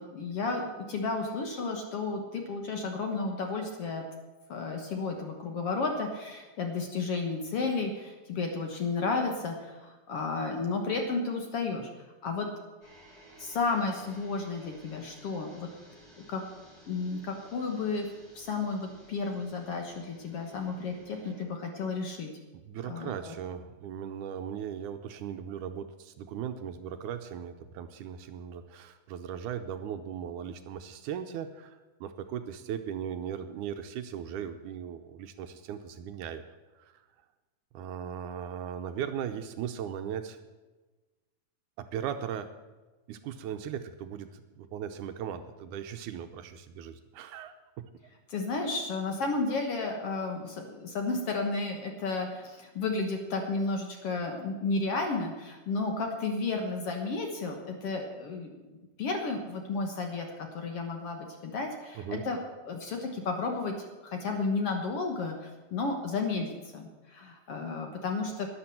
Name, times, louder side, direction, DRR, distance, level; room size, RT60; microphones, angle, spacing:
voice 1, 0.0-4.0 4.5-11.9 12.2-12.5 13.4-15.7 16.3-16.4 16.9-18.1 18.3-22.3 22.8-23.3 48.3-60.3 60.5-62.4 62.7-68.5, left 3 dB, 55° left, 3 dB, 1.9 m, -32 dB
sound 1, 12.8-21.4, right 1 dB, 30° left, 4.9 m, -56 dB
voice 2, 22.5-36.5 36.8-37.1 37.7-40.4 41.8-42.5 43.1-47.8 62.0-62.2, right 9 dB, 75° right, 8 dB, 2.1 m, -38 dB
11.5 x 10.5 x 7.6 m, 1.2 s
omnidirectional pair, 3.8 m